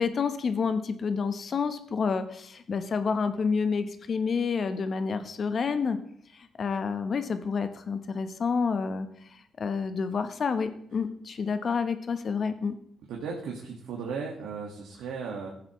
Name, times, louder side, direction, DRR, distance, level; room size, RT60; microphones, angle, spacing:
voice 1, 0.0-6.0 6.6-9.1 9.6-12.8, left 5 dB, 45° left, 10 dB, 0.9 m, -29 dB
voice 2, 13.1-15.5, right 5 dB, 80° right, -2 dB, 1.7 m, -36 dB
15.5 x 7.4 x 3.1 m, 0.68 s
cardioid pair, 90°, 0 cm